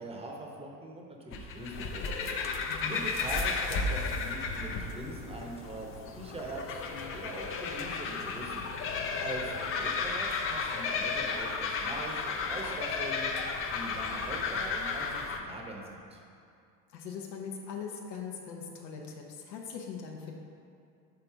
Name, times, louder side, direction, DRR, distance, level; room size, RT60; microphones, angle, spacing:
voice 1, 0.0-2.3 2.8-8.7 9.2-13.3 13.6-16.2, right 2 dB, 10° right, 0 dB, 0.8 m, -42 dB
sound 1, 1.3-15.4, left 4 dB, 30° left, 0.4 m, -33 dB
voice 2, 2.7-3.0 16.9-20.3, left 6 dB, 80° left, 0 dB, 0.9 m, -41 dB
5.8 x 3.9 x 4.6 m, 2.5 s
hypercardioid pair, 95°, 49 cm